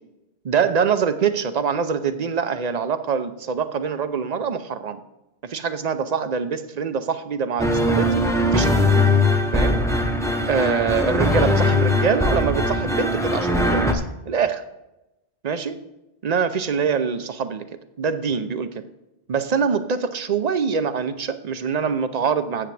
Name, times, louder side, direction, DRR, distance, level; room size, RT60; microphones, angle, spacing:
voice 1, 0.4-5.0 5.4-8.2 8.5-9.0 9.5-9.8 10.5-14.6 15.4-15.8 16.2-17.7 18.0-18.8 19.3-22.7, right 6 dB, 50° right, 11 dB, 0.6 m, -24 dB
sound 1, 7.6-13.9, left 1 dB, 5° left, 0.7 m, -20 dB
13.5 x 8.0 x 3.3 m, 0.95 s
omnidirectional pair, 1.1 m